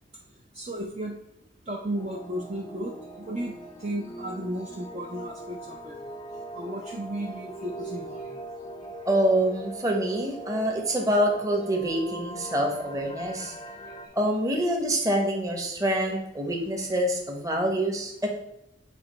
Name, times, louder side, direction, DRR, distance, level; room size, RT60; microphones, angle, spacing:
voice 1, 0.5-1.2 1.7-6.0 6.5-8.3, right 1 dB, 35° right, -1 dB, 0.5 m, -34 dB
sound 1, 1.9-14.1, right 1 dB, 25° left, 0.5 m, -41 dB
voice 2, 9.0-13.6 14.1-18.3, right 1 dB, 20° right, 1 dB, 1.0 m, -26 dB
8.0 x 2.9 x 4.2 m, 0.83 s
head